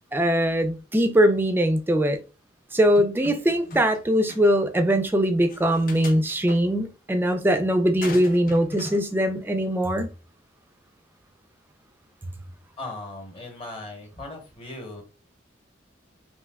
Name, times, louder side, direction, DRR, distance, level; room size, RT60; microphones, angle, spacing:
voice 1, 0.1-2.2 2.7-10.1, equal, 10° right, 0.3 m, -21 dB
sound 1, 3.0-4.0 4.3-4.4 5.5-6.6 8.0-9.0, left 2 dB, 50° left, 0.6 m, -37 dB
voice 2, 12.8-15.0, left 2 dB, 30° left, 0.9 m, -38 dB
3.3 x 2.7 x 2.2 m
head